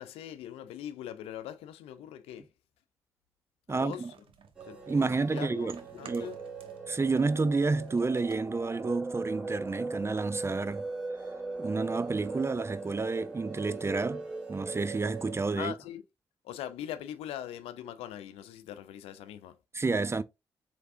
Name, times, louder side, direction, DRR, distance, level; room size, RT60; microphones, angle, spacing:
voice 1, 0.0-2.5 3.7-4.0 4.6-6.4 15.6-16.0 16.4-19.6, left 11 dB, 85° left, 0.4 m, -41 dB
voice 2, 3.7-4.1 4.9-5.8 6.1-6.3 6.9-10.8 11.6-15.7 19.7-20.2, right 3 dB, 25° right, 0.4 m, -30 dB
sound 1, 3.9-6.8 7.1-9.5, right 6 dB, 60° right, 0.8 m, -53 dB
sound 2, 4.5-15.3, right 3 dB, 5° right, 2.1 m, -39 dB
4.5 x 3.4 x 2.5 m
hypercardioid pair, 40°, 10 cm